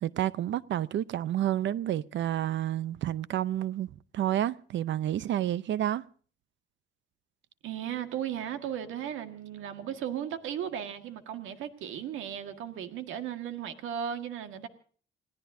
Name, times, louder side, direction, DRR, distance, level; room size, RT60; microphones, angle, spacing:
voice 1, 0.0-6.0, right 12 dB, 70° right, 0.7 m, -30 dB
voice 2, 7.6-14.7, right 9 dB, 85° right, 1.7 m, -36 dB
29.0 x 17.5 x 2.7 m
cardioid pair, 90°, 20 cm